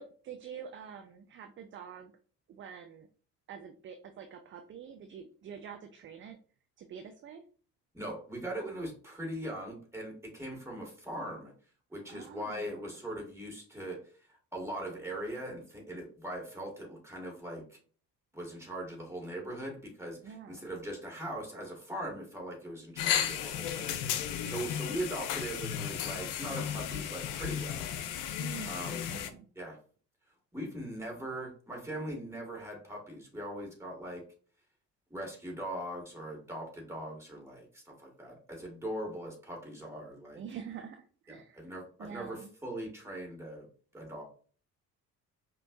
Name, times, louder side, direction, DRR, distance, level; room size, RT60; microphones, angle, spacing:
voice 1, 0.0-2.1 2.5-3.1 3.5-6.4 6.8-7.4 12.1-12.9 20.2-20.7 28.4-29.5 40.4-41.6 42.0-42.5, right 7 dB, 25° right, 6 dB, 0.4 m, -46 dB
voice 2, 7.9-11.5 11.9-14.0 14.3-17.8 18.3-27.9 28.7-29.1 29.6-29.8 30.5-34.2 35.1-40.4 41.3-43.7 43.9-44.2, right 1 dB, 5° right, -1 dB, 2.1 m, -40 dB
sound 1, 23.0-29.3, left 9 dB, 55° left, 0.6 m, -34 dB
5.1 x 2.7 x 2.6 m, 0.42 s
figure-of-eight pair, 50°, 47 cm